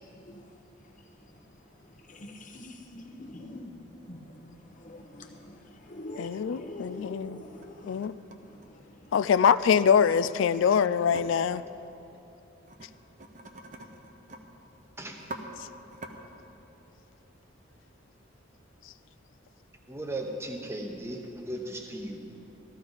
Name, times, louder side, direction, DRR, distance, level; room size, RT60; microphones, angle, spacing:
voice 1, 0.0-8.1 8.4-9.1, left 1 dB, 40° left, 3 dB, 0.9 m, -46 dB
voice 2, 6.2-7.4 7.8-8.1 9.1-11.6, left 7 dB, 75° left, 15 dB, 0.3 m, -24 dB
sound 1, 7.3-7.7 8.0-9.4 11.1-11.2 12.7-12.9 13.2-14.4 14.7-14.8 15.1-15.4 15.9-16.1, right 2 dB, 40° right, 0.8 m, -44 dB
voice 3, 19.9-22.2, right 1 dB, 15° right, 2 dB, 0.9 m, -36 dB
15.0 x 13.5 x 4.0 m, 2.9 s
head